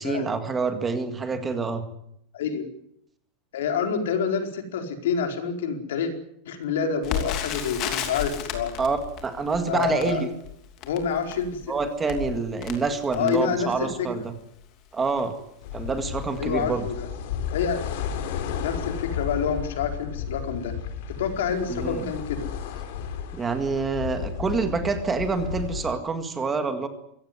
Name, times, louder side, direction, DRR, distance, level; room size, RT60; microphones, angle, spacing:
voice 1, 0.0-1.8 8.8-10.3 11.7-14.3 14.9-15.3 15.7-16.9 21.7-22.1 23.3-26.9, right 4 dB, 10° right, 8 dB, 1.9 m, -27 dB
voice 2, 2.3-2.6 3.5-6.1 6.4-8.8 9.7-10.3 10.9-11.6 13.1-14.2 16.4-17.1 17.5-17.8 18.6-20.7 21.1-22.5, left 6 dB, 80° left, 5 dB, 4.6 m, -27 dB
Crackle, 7.0-14.0 14.6-14.7 15.0-15.3 15.9-16.1 16.4-16.5, left 9 dB, 30° left, 3.0 m, -34 dB
sound 1, 15.6-25.9, left 8 dB, 55° left, 3.6 m, -33 dB
23.5 x 17.0 x 9.7 m, 0.74 s
supercardioid pair, 180°, 0 cm